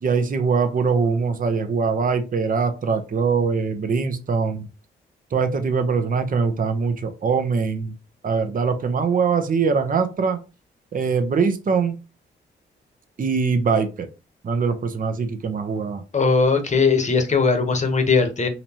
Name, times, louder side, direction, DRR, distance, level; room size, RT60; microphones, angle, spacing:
voice 1, 0.0-4.7 5.3-7.9 8.2-10.4 10.9-12.0 13.2-14.1 14.4-16.0, right 5 dB, 45° right, 7 dB, 0.7 m, -22 dB
voice 2, 16.1-18.5, left 4 dB, 35° left, 7 dB, 1.1 m, -19 dB
4.0 x 3.0 x 2.9 m, 0.30 s
supercardioid pair, 50°, 20 cm